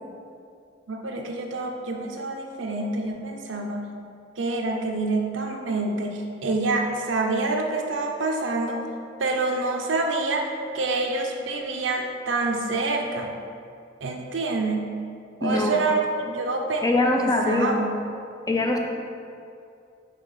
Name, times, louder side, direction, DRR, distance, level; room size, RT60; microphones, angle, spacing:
voice 1, 0.9-3.9 4.4-8.8 9.2-13.3 14.0-14.9 15.4-16.8 17.2-18.0, right 3 dB, 75° right, 2 dB, 0.7 m, -27 dB
voice 2, 15.4-15.8 16.8-17.8 18.5-18.8, left 2 dB, 20° left, 1 dB, 0.5 m, -22 dB
5.8 x 3.5 x 5.6 m, 2.5 s
head